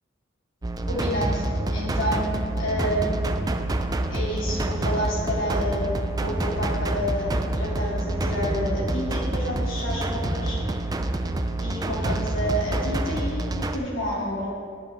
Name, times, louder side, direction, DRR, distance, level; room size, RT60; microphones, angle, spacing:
sound 1, 0.6-13.8, right 1 dB, 20° right, 0.4 m, -27 dB
voice 1, 0.9-1.4 1.7-3.3 4.1-10.6 11.6-14.5, equal, 75° left, -5 dB, 2.6 m, -29 dB
10.0 x 9.9 x 3.4 m, 2.2 s
head